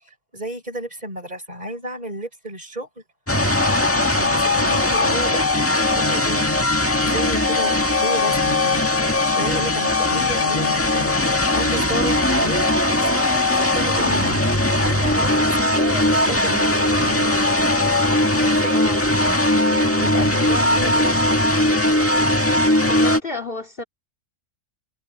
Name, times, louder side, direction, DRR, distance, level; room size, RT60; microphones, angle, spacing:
voice 1, 0.3-3.0 3.6-5.5 5.9-6.6 7.0-9.1 9.3-17.4 18.3-18.8 19.2-19.4 19.7-21.5, equal, 30° right, 5.5 m, -32 dB
sound 1, 3.3-23.2, left 1 dB, 10° left, 1.7 m, -19 dB
voice 2, 18.7-19.0 22.8-23.8, left 2 dB, 45° left, 3.2 m, -32 dB
omnidirectional pair, 1.3 m